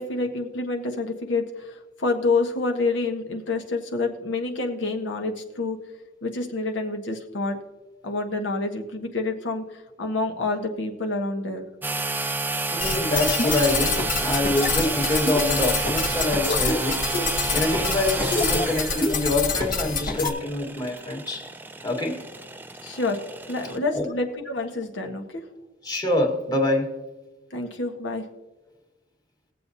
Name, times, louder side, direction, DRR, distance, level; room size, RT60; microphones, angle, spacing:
voice 1, 0.0-1.7 2.0-5.8 6.2-7.6 8.0-11.7 22.8-23.2 23.5-25.4 27.5-28.2, left 3 dB, 80° left, 1.3 m, -28 dB
sound 1, 11.8-23.8, right 3 dB, 10° right, 0.4 m, -30 dB
voice 2, 12.7-17.1 17.5-21.6 21.8-22.3 23.7-24.1 25.8-27.0, left 2 dB, 20° left, 1.5 m, -26 dB
sound 2, 12.8-20.3, left 4 dB, 50° left, 1.2 m, -26 dB
20.0 x 7.7 x 2.7 m
head